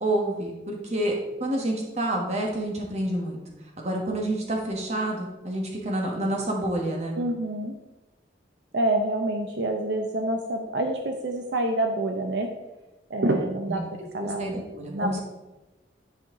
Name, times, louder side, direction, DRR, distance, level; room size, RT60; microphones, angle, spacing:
voice 1, 0.0-1.1 1.4-3.4 3.8-7.2 13.7-13.8 14.2-15.2, right 1 dB, 35° right, 0 dB, 1.3 m, -28 dB
voice 2, 7.1-7.7 8.7-12.5 13.1-13.8 14.1-14.5 14.9-15.2, right 1 dB, 70° right, 4 dB, 0.6 m, -27 dB
10.5 x 4.4 x 3.7 m, 1.1 s
head